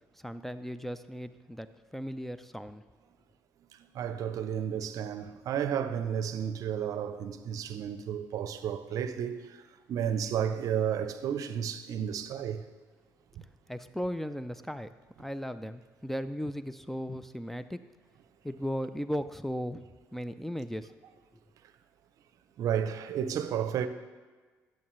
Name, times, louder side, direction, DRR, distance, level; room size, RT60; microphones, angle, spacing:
voice 1, 0.1-2.8 13.7-17.8 18.4-19.8 20.1-20.9, equal, 5° left, 0.4 m, -36 dB
voice 2, 3.9-9.6 9.9-12.7 22.6-23.9, right 8 dB, 65° right, 0.6 m, -32 dB
12.5 x 6.6 x 3.1 m
supercardioid pair, 70°, 6 cm